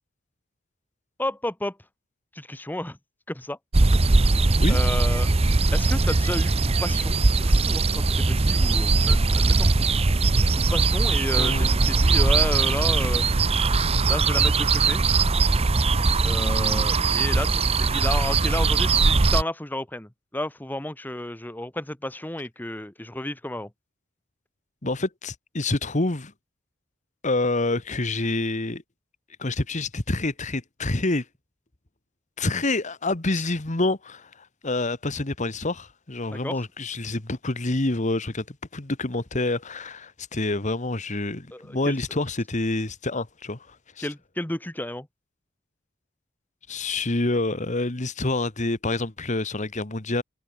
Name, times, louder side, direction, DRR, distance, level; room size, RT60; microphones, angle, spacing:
voice 1, 1.2-1.8 2.3-3.0 3.3-3.6 3.9-4.1 4.7-5.3 5.7-9.7 10.5-13.4 14.1-15.0 16.2-23.7 36.3-36.6 41.5-42.0 44.0-45.1, left 1 dB, 10° left, 1.0 m, -32 dB
sound 1, 3.7-19.4, right 3 dB, 30° right, 0.7 m, -20 dB
voice 2, 11.4-11.9 16.4-16.8 24.8-26.3 27.2-28.8 29.4-31.2 32.4-38.4 38.7-44.1 46.7-50.2, left 2 dB, 35° left, 1.5 m, -27 dB
head